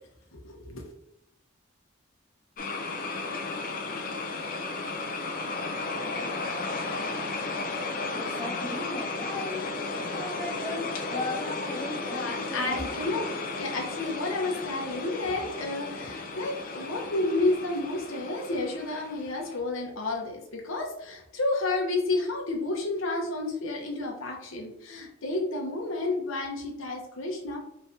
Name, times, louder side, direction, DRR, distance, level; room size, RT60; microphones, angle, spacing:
voice 1, 0.3-0.8 12.1-13.3 13.5-27.6, left 2 dB, 80° left, 0 dB, 0.8 m, -31 dB
sound 1, 2.6-19.6, left 3 dB, 40° left, 0.5 m, -34 dB
voice 2, 8.1-13.0, left 2 dB, 10° left, -6 dB, 1.0 m, -37 dB
3.5 x 3.2 x 2.7 m, 0.80 s
head